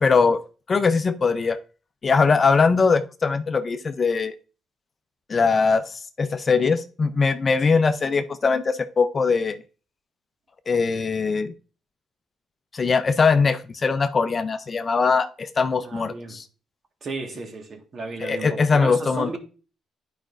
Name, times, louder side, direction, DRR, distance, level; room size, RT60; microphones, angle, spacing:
voice 1, 0.0-0.4 0.7-1.6 2.0-4.3 5.3-9.6 10.7-11.5 12.7-16.4 18.2-19.4, left 4 dB, 35° left, 0.6 m, -21 dB
voice 2, 15.8-16.4 17.0-19.4, right 3 dB, 50° right, 1.6 m, -34 dB
10.5 x 5.1 x 2.5 m
cardioid pair, 90°, 0 cm